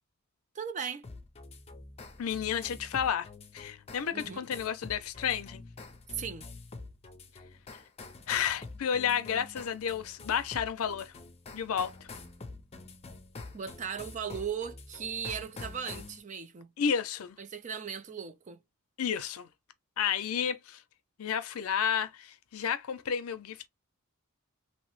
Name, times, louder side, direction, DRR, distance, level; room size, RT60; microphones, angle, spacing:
voice 1, 0.5-1.1 4.1-4.5 6.1-6.5 13.5-16.7 17.4-18.6, right 7 dB, 35° right, 0.4 m, -37 dB
sound 1, 1.0-16.2, left 3 dB, 30° left, 0.5 m, -47 dB
voice 2, 2.2-3.3 3.5-5.6 8.3-11.1 11.5-12.1 16.8-17.4 19.0-19.5 20.0-20.8 21.2-23.7, left 8 dB, 80° left, 0.5 m, -31 dB
3.0 x 2.0 x 3.0 m
head